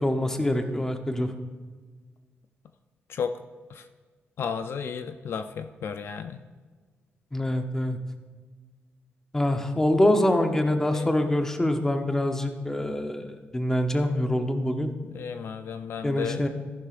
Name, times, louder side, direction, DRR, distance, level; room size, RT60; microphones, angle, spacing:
voice 1, 0.0-1.3 7.3-8.0 9.3-14.9 16.0-16.5, left 1 dB, 10° left, 5 dB, 0.8 m, -25 dB
voice 2, 4.4-6.4 10.9-11.1 15.1-16.5, left 6 dB, 60° left, 9 dB, 0.4 m, -33 dB
14.0 x 11.5 x 2.5 m, 1.4 s
wide cardioid pair, 160°, 5 cm